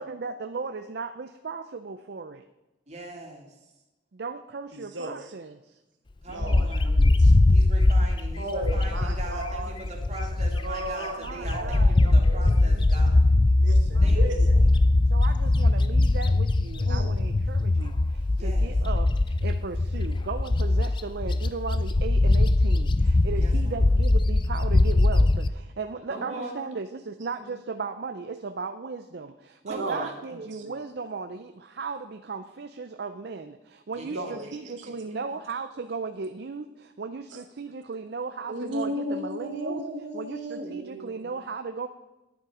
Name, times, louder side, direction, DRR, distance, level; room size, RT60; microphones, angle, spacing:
voice 1, 0.0-2.5 4.1-5.8 11.2-13.0 13.9-14.5 15.1-39.8 40.1-41.9, right 4 dB, 60° right, 9 dB, 0.5 m, -36 dB
voice 2, 2.9-3.5 6.2-7.0 7.5-13.2 14.0-14.9 17.5-17.6 18.4-18.7 23.4-23.9 26.1-26.6 29.7-30.1 34.0-35.3, right 2 dB, 40° right, 0 dB, 2.4 m, -41 dB
voice 3, 4.7-5.2 6.3-7.4 8.4-9.7 10.5-11.2 11.5-11.8 12.3-12.4 13.6-14.6 16.8-17.1 29.8-30.1 30.4-30.7 34.1-34.4 38.5-41.3, right 1 dB, 85° right, 4 dB, 1.2 m, -35 dB
Bird, 6.4-10.9 11.3-25.5, left 2 dB, 25° left, 0.4 m, -21 dB
10.5 x 9.0 x 4.9 m, 1.0 s
head